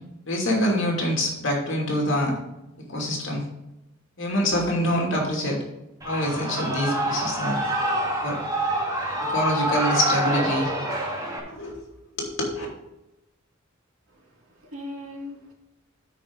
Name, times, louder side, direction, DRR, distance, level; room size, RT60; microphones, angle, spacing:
voice 1, 0.2-2.3 2.9-3.4 4.2-5.6 6.0-7.6 8.2-8.4 9.3-10.7 11.5-11.9 12.1-12.7, left 1 dB, 65° left, -1 dB, 2.7 m, -25 dB
Shout / Cheering, 6.0-11.4, right 1 dB, 15° right, 1.6 m, -26 dB
voice 2, 14.2-15.5, left 1 dB, 85° right, 0 dB, 2.4 m, -39 dB
12.0 x 5.0 x 4.0 m, 0.90 s
head